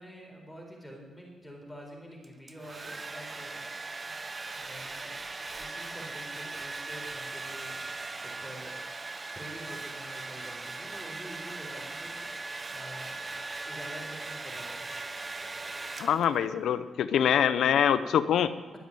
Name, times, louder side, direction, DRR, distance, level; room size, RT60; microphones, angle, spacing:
voice 1, 0.0-4.2 4.5-5.2 5.6-8.7 9.3-13.1 13.6-14.8, equal, 5° left, 0 dB, 4.0 m, -47 dB
Domestic sounds home sounds, 2.2-16.5, right 3 dB, 30° right, 0.8 m, -39 dB
voice 2, 16.0-18.6, left 9 dB, 80° left, 13 dB, 0.6 m, -24 dB
11.5 x 9.4 x 9.0 m, 1.4 s
cardioid pair, 85°, 0 cm